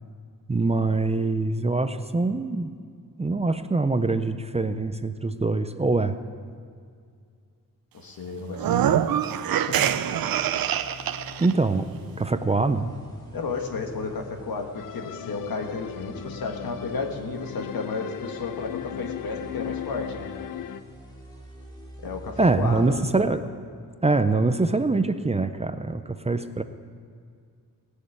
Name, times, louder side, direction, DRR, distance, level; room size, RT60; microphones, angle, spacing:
voice 1, 0.5-2.7 3.2-6.2 11.4-11.9 12.2-12.9 22.4-23.5 24.0-26.6, right 3 dB, 20° right, 9 dB, 0.5 m, -24 dB
voice 2, 7.9-9.0 9.7-9.9 13.3-20.3 22.0-22.9, left 4 dB, 85° left, 3 dB, 1.7 m, -32 dB
sound 1, 8.5-11.5, right 10 dB, 85° right, 0.6 m, -24 dB
sound 2, 9.8-23.2, left 1 dB, 10° left, 2.2 m, -46 dB
sound 3, 14.8-20.8, left 11 dB, 70° left, 0.5 m, -37 dB
17.5 x 6.6 x 8.5 m, 2.2 s
wide cardioid pair, 130°, 34 cm